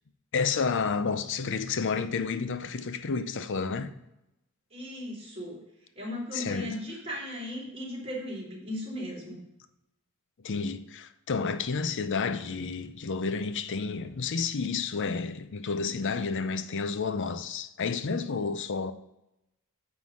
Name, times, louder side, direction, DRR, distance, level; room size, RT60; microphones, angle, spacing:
voice 1, 0.3-3.9 6.3-6.8 10.4-18.9, left 5 dB, 55° left, 0.6 m, -30 dB
voice 2, 4.7-5.6 5.9-9.4, left 1 dB, 25° right, 3.1 m, -37 dB
9.2 x 3.9 x 6.2 m
head